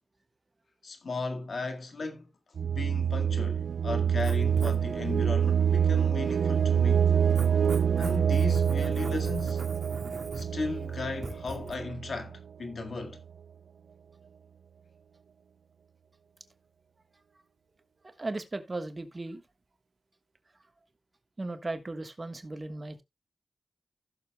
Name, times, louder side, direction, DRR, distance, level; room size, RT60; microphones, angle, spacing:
voice 1, 0.8-2.3 2.6-7.1 8.0-9.6 10.3-13.2, left 3 dB, 70° left, 1.8 m, -36 dB
sound 1, 2.6-12.4, right 8 dB, 85° right, 0.4 m, -26 dB
Writing, 4.1-11.7, right 2 dB, 50° right, 2.0 m, -43 dB
voice 2, 18.2-19.4 21.4-23.0, right 2 dB, 35° right, 1.4 m, -36 dB
15.5 x 6.9 x 2.2 m
cardioid pair, 70°, 0 cm